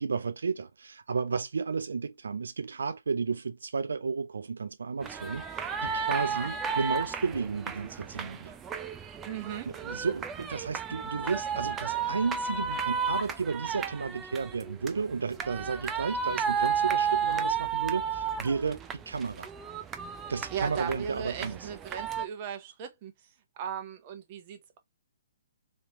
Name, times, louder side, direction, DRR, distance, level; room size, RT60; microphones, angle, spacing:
voice 1, 0.0-8.5 9.7-19.5 20.3-21.7, right 5 dB, 85° right, 0.4 m, -33 dB
sound 1, 5.0-22.2, right 6 dB, 15° right, 0.4 m, -33 dB
voice 2, 6.1-6.5 9.3-9.7 20.5-23.1 23.6-24.8, right 8 dB, 35° right, 1.1 m, -37 dB
3.3 x 2.9 x 3.0 m
hypercardioid pair, 145°, 0 cm